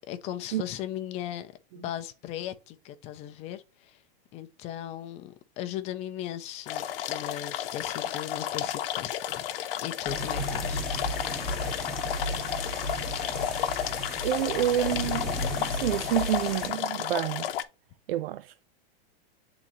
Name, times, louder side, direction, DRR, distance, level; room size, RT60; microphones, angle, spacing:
voice 1, 0.1-4.0 4.3-9.5 9.8-10.8, left 12 dB, 20° left, 0.5 m, -37 dB
sound 1, 6.7-17.6, left 10 dB, 70° left, 0.8 m, -32 dB
sound 2, 10.1-16.7, equal, ahead, 1.5 m, -34 dB
voice 2, 14.2-17.5 18.1-18.6, right 12 dB, 75° right, 0.5 m, -29 dB
8.7 x 3.9 x 2.8 m
supercardioid pair, 165°, 29 cm